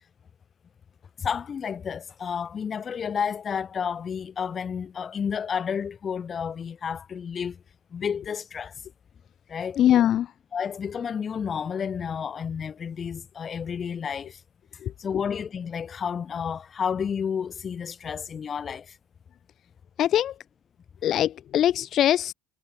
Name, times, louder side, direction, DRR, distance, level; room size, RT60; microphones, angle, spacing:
voice 1, 1.2-7.6 7.9-8.7 9.5-9.8 10.5-14.4 15.0-19.0, left 7 dB, 30° left, 2.1 m, -31 dB
voice 2, 9.8-10.3 14.8-14.9 20.0-20.4 21.0-22.3, left 11 dB, 50° left, 1.6 m, -22 dB
cardioid pair, 125°, 0 cm